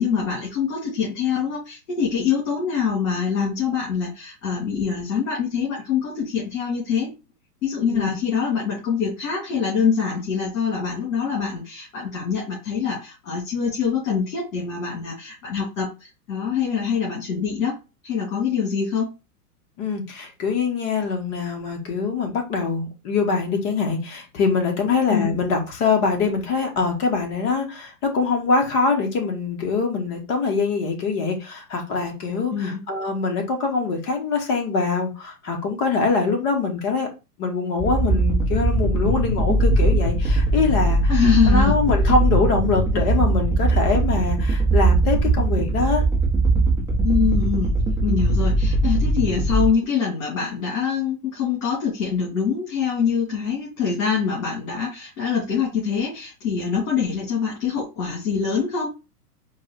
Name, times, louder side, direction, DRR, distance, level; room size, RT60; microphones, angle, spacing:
voice 1, 0.0-7.1 7.6-17.8 18.0-19.1 25.1-25.3 32.5-32.8 41.1-41.8 47.0-47.7 48.0-58.9, left 6 dB, 55° left, 2.3 m, -24 dB
voice 2, 19.8-37.1 37.4-41.2 41.5-46.0, left 4 dB, 30° left, 1.3 m, -23 dB
sound 1, 37.8-49.7, right 2 dB, 5° right, 0.8 m, -20 dB
4.6 x 2.4 x 4.1 m
hypercardioid pair, 120°, 47 cm